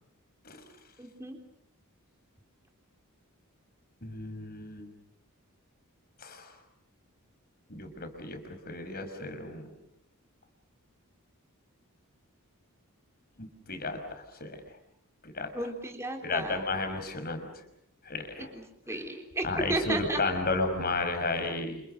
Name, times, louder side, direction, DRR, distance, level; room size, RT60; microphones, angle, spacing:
voice 1, 1.0-1.4 15.5-16.6 18.9-20.2, right 2 dB, 10° right, 3 dB, 3.8 m, -33 dB
voice 2, 4.0-4.9 6.2-6.5 7.7-9.7 13.4-14.6 15.2-15.5 16.2-17.5 18.1-18.5 18.9-19.0 19.4-21.8, left 3 dB, 40° left, 6 dB, 5.5 m, -33 dB
30.0 x 28.5 x 6.6 m, 0.73 s
head